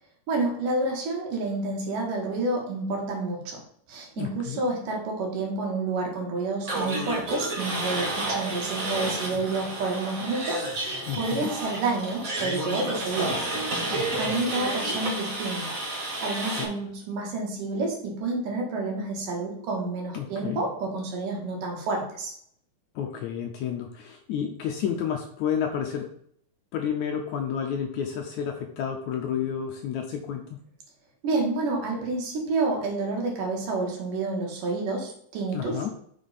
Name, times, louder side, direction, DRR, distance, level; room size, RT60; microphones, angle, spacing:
voice 1, 0.3-3.6 3.9-13.5 13.8-15.8 16.2-22.3 31.2-35.9, right 3 dB, 70° right, 0 dB, 3.0 m, -29 dB
voice 2, 4.2-4.6 11.1-11.5 13.9-14.4 16.5-16.7 20.1-20.6 23.0-26.1 26.7-30.4 35.5-35.9, left 8 dB, 80° left, 3 dB, 1.8 m, -31 dB
sound 1, 6.6-16.6, right 2 dB, 45° right, 1.1 m, -31 dB
6.1 x 5.2 x 4.1 m, 0.66 s
omnidirectional pair, 3.9 m